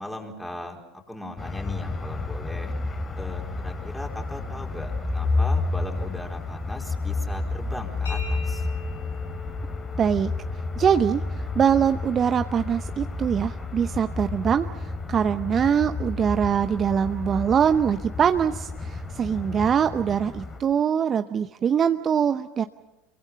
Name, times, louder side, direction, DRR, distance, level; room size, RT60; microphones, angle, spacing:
voice 1, 0.0-2.7 3.2-8.7, left 1 dB, 5° left, 1 dB, 4.4 m, -38 dB
sound 1, 1.4-20.6, left 3 dB, 25° left, 3.2 m, -31 dB
sound 2, 8.1-15.6, left 5 dB, 85° left, 3.8 m, -46 dB
voice 2, 10.0-10.3 10.8-22.6, right 8 dB, 35° right, 10 dB, 0.7 m, -23 dB
27.0 x 23.5 x 5.7 m, 0.98 s
hypercardioid pair, 80°, 0 cm